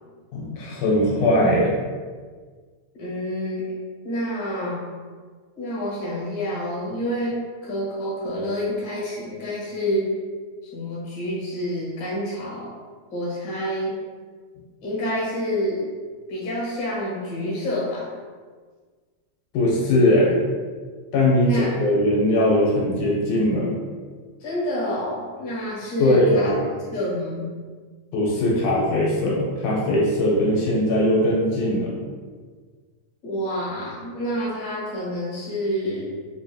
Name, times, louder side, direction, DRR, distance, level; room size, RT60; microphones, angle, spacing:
voice 1, 0.3-1.8 19.5-20.3 21.1-23.7 26.0-26.7 28.1-31.9, left 1 dB, 85° left, -4 dB, 2.1 m, -20 dB
voice 2, 2.9-3.7 4.0-4.8 5.6-10.1 10.7-12.7 13.1-14.0 14.8-15.9 16.3-18.1 21.4-21.8 24.4-27.5 33.2-36.1, equal, 60° left, -6 dB, 1.9 m, -28 dB
5.0 x 2.7 x 2.3 m, 1.5 s
omnidirectional pair, 3.4 m